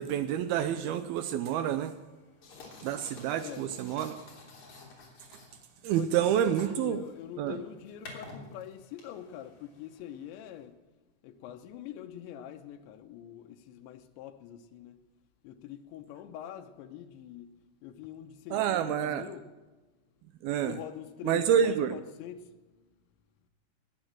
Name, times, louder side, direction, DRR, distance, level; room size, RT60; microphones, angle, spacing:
voice 1, 0.0-1.9 2.8-4.2 5.8-7.0 7.4-7.6 18.5-19.2 20.4-20.8 21.2-21.9, right 9 dB, 80° right, 2.2 m, -28 dB
sound 1, 1.4-10.7, left 3 dB, 45° left, 4.3 m, -52 dB
voice 2, 3.4-3.7 6.0-10.8 11.2-15.0 15.4-17.6 17.8-19.5 20.6-22.8, left 10 dB, 85° left, 3.2 m, -44 dB
19.0 x 9.0 x 7.6 m
omnidirectional pair, 5.1 m